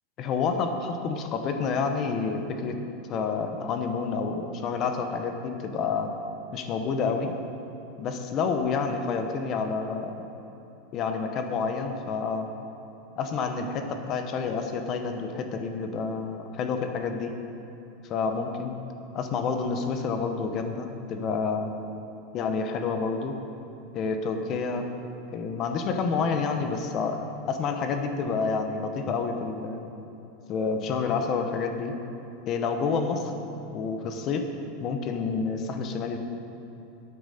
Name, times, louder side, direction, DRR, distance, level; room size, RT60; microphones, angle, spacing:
voice 1, 0.2-2.7 3.1-6.1 6.5-7.3 8.0-10.1 10.9-12.5 13.2-17.3 18.1-18.7 19.1-21.7 22.3-23.3 23.9-24.9 25.3-29.8 30.5-31.9 32.5-33.3 33.7-34.4 34.8-36.2, left 5 dB, 30° left, 6 dB, 1.0 m, -29 dB
11.0 x 8.7 x 6.7 m, 3.0 s
supercardioid pair, 160°, 0 cm